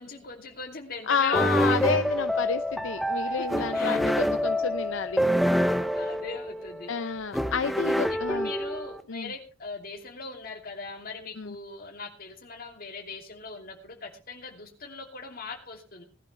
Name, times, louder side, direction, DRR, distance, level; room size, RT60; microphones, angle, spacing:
voice 1, 0.0-1.8 3.2-4.0 5.9-7.1 8.1-16.0, left 3 dB, 50° left, 4 dB, 2.7 m, -40 dB
voice 2, 1.1-5.2 6.9-8.5 9.1-9.3 11.4-11.5, left 6 dB, 75° left, 11 dB, 0.6 m, -30 dB
sound 1, 1.3-9.0, equal, ahead, 0.6 m, -27 dB
19.0 x 11.5 x 3.3 m, 0.34 s
head